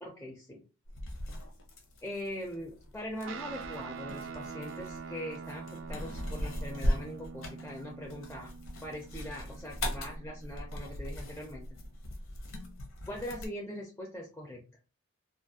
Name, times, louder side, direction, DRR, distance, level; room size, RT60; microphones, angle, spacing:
voice 1, 0.0-0.6 2.0-8.5 8.8-11.7 13.1-14.6, equal, 10° left, 0 dB, 0.4 m, -41 dB
sound 1, 0.8-13.5, left 1 dB, 70° left, 0.6 m, -39 dB
Guitar, 3.2-12.0, right 5 dB, 65° right, 0.3 m, -45 dB
2.5 x 2.4 x 2.6 m, 0.34 s
head